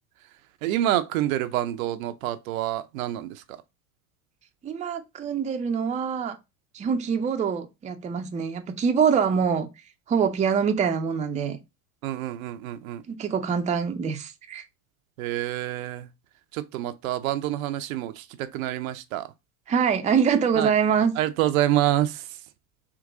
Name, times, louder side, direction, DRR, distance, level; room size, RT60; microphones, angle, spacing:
voice 1, 0.6-3.4 12.0-13.0 15.2-16.1 16.5-19.3 20.6-20.7 21.2-22.2, right 13 dB, 65° right, 0.6 m, -27 dB
voice 2, 4.6-6.4 6.7-9.7 10.1-11.6 13.1-14.6 19.7-21.1, right 6 dB, 15° right, 0.5 m, -24 dB
3.7 x 2.9 x 3.7 m
hypercardioid pair, 80°, 45 cm